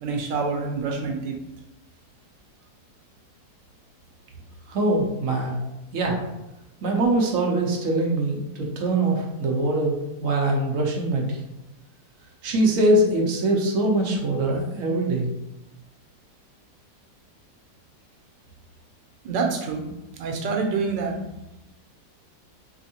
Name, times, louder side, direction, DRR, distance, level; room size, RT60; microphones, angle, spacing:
voice 1, 0.0-1.4 19.2-19.9 20.2-21.2, right 4 dB, 85° right, 2 dB, 1.3 m, -26 dB
voice 2, 4.7-5.6 5.9-6.2 6.8-11.4 12.4-15.3, right 2 dB, 65° right, 0 dB, 0.8 m, -23 dB
3.5 x 3.1 x 2.8 m, 0.92 s
omnidirectional pair, 1.9 m